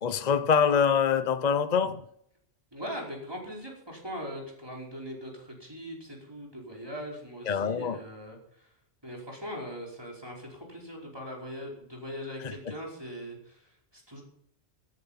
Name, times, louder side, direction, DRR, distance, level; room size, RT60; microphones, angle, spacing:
voice 1, 0.0-2.0 7.5-8.0 12.4-12.5, left 7 dB, 40° left, 0.9 m, -25 dB
voice 2, 2.7-8.7 9.0-14.2, equal, 20° right, 5.1 m, -40 dB
18.0 x 11.0 x 5.9 m
omnidirectional pair, 1.2 m